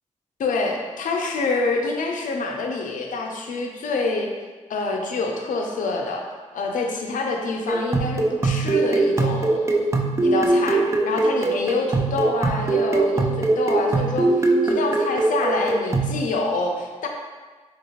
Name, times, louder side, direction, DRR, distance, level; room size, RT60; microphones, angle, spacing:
voice 1, 0.4-4.3 4.7-6.2 6.5-9.9 10.2-17.1, left 3 dB, 80° left, 2 dB, 0.4 m, -26 dB
sound 1, 7.7-16.2, right 2 dB, 20° right, 0.3 m, -21 dB
3.0 x 2.4 x 3.0 m, 1.4 s
cardioid pair, 60°, 13 cm